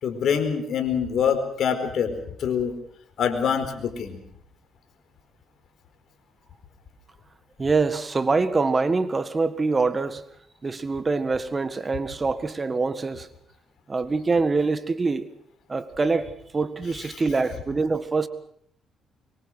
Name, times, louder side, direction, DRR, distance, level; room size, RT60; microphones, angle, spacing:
voice 1, 0.0-2.7 3.2-4.2 16.8-17.6, left 7 dB, 65° left, 4.4 m, -26 dB
voice 2, 7.6-10.2 10.6-13.3 13.9-15.3 15.7-18.3, right 3 dB, 30° right, 1.7 m, -24 dB
24.0 x 23.0 x 6.3 m
cardioid pair, 90°, 0 cm